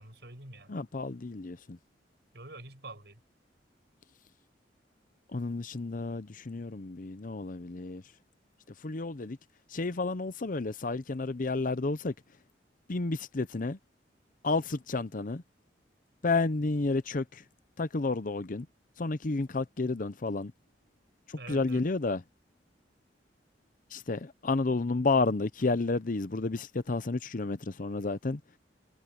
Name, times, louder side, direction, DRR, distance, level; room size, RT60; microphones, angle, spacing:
voice 1, 0.0-0.8 2.3-3.2 21.4-21.8, right 2 dB, 65° right, 7.6 m, -46 dB
voice 2, 0.7-1.8 5.3-8.0 8.8-9.4 9.7-12.1 12.9-13.8 14.4-15.4 16.2-17.4 17.8-18.7 19.0-20.5 21.3-22.2 23.9-28.4, left 3 dB, 50° left, 0.7 m, -31 dB
head